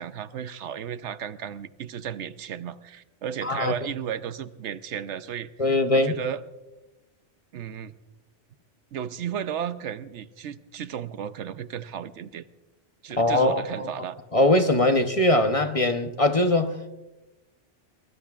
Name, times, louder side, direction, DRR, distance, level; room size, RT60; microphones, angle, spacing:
voice 1, 0.0-5.5 5.9-6.4 7.5-7.9 8.9-12.4 13.0-14.2, right 9 dB, 75° right, 1.0 m, -34 dB
voice 2, 3.4-3.7 5.6-6.1 13.2-13.9 14.3-16.9, left 1 dB, 35° left, 0.8 m, -21 dB
23.5 x 21.5 x 2.4 m
omnidirectional pair, 1.2 m